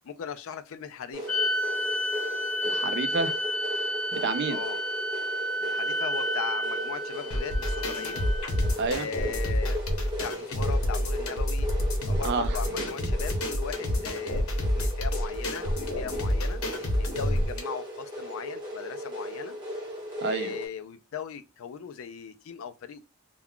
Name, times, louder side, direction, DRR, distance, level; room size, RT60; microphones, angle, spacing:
voice 1, 0.0-1.3 4.5-4.8 5.6-8.3 8.9-9.8 10.2-11.7 12.1-16.6 17.0-19.6 20.2-23.0, left 7 dB, 65° left, 0.4 m, -38 dB
sound 1, 1.1-20.7, equal, 20° right, 1.0 m, -37 dB
sound 2, 1.3-8.8, equal, 10° left, 0.8 m, -31 dB
voice 2, 2.6-3.4 4.1-4.6 8.8-9.1 12.2-12.6 20.2-20.5, right 4 dB, 55° right, 0.4 m, -29 dB
sound 3, 7.3-17.6, left 1 dB, 85° left, 0.8 m, -28 dB
2.3 x 2.2 x 3.6 m
head